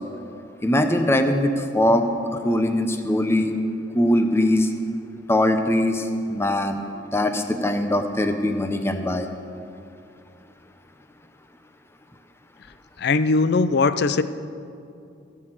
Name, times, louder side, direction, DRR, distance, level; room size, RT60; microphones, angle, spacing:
voice 1, 0.6-3.6 3.9-4.7 5.3-6.8 7.1-9.3, left 1 dB, 15° left, 6 dB, 0.8 m, -21 dB
voice 2, 13.0-14.2, left 3 dB, 60° left, 14 dB, 0.5 m, -20 dB
16.5 x 6.2 x 7.7 m, 2.5 s
head